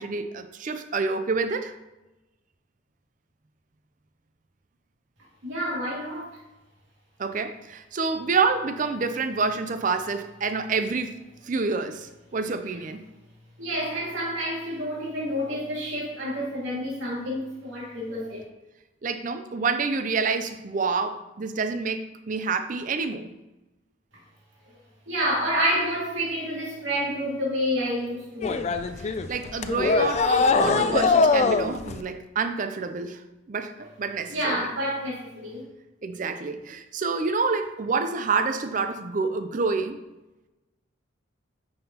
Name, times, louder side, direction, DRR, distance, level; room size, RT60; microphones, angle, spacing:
voice 1, 0.0-1.7 7.2-11.2 11.4-13.1 19.0-23.3 29.0-34.7 36.0-40.0, right 4 dB, 40° right, 9 dB, 0.4 m, -28 dB
voice 2, 5.4-6.3 13.6-18.4 25.1-28.7 34.3-35.6, equal, 75° right, -4 dB, 2.1 m, -28 dB
sound 1, 28.4-32.0, left 4 dB, 35° left, 0.3 m, -22 dB
9.4 x 5.5 x 2.9 m, 1.0 s
head